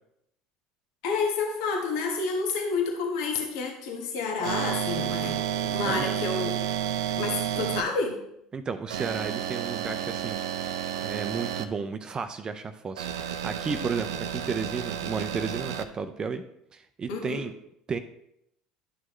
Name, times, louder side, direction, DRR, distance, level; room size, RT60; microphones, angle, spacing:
voice 1, 1.0-6.6 7.2-8.2 17.1-17.4, left 4 dB, 75° left, 2 dB, 1.3 m, -29 dB
sound 1, 4.4-7.8 8.9-11.6 13.0-15.8, right 10 dB, 85° right, 0.5 m, -31 dB
voice 2, 8.5-10.7 11.0-16.4 16.7-17.5 17.9-18.0, right 5 dB, 30° right, 9 dB, 0.5 m, -33 dB
11.0 x 6.2 x 3.1 m, 0.79 s
hypercardioid pair, 80°, 3 cm